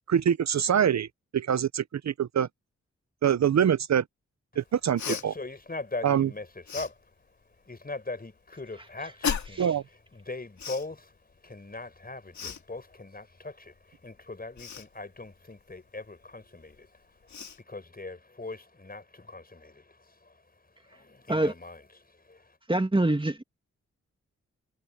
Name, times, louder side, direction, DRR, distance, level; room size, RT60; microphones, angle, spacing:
voice 1, 0.1-1.1 1.3-2.5 3.2-4.0 4.6-5.3 6.0-6.3 9.6-9.8, right 9 dB, 65° right, 0.8 m, -24 dB
Cough, 5.0-5.2 6.7-6.9 9.2-9.7 10.6-10.9 12.3-12.6 14.6-14.9 16.7-16.8 17.3-17.6, left 7 dB, 70° left, 2.5 m, -33 dB
voice 2, 5.1-7.0 7.7-9.7 10.1-11.1 11.4-20.4 20.8-22.6, left 3 dB, 30° left, 5.6 m, -40 dB
voice 3, 22.7-23.4, right 1 dB, 15° right, 2.3 m, -25 dB
cardioid pair, 50°, 29 cm